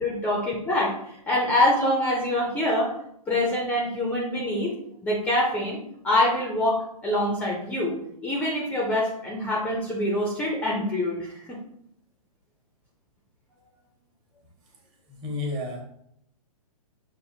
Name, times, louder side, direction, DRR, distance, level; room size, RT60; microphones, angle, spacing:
voice 1, 0.0-2.9 3.3-4.7 5.0-5.8 6.0-8.0 8.2-11.3, left 1 dB, 10° left, -2 dB, 0.6 m, -25 dB
voice 2, 15.1-15.8, left 2 dB, 25° right, 0 dB, 1.2 m, -31 dB
6.5 x 2.5 x 2.7 m, 0.74 s
hypercardioid pair, 135°, 19 cm